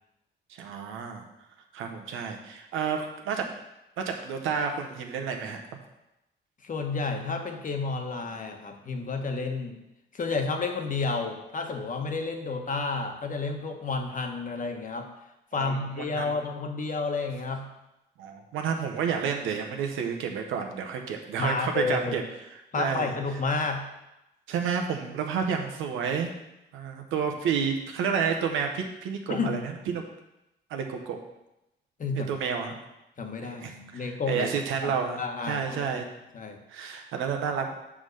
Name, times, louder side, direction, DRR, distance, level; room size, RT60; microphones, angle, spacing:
voice 1, 0.5-1.2 1.7-3.5 4.0-5.6 15.5-16.4 18.2-22.2 22.8-23.1 24.5-26.3 26.7-30.0 30.7-31.2 32.3-32.7 33.4-35.2 35.5-36.0 36.7-37.7, right 6 dB, 90° right, 3 dB, 1.1 m, -30 dB
voice 2, 6.6-9.8 10.1-15.1 15.5-17.7 21.4-22.1 22.7-23.9 29.3-29.6 32.0-32.3 33.2-34.5 34.8-36.0 36.3-36.6, left 4 dB, 40° left, 4 dB, 1.2 m, -31 dB
5.8 x 5.0 x 6.5 m, 0.91 s
cardioid pair, 90°, 20 cm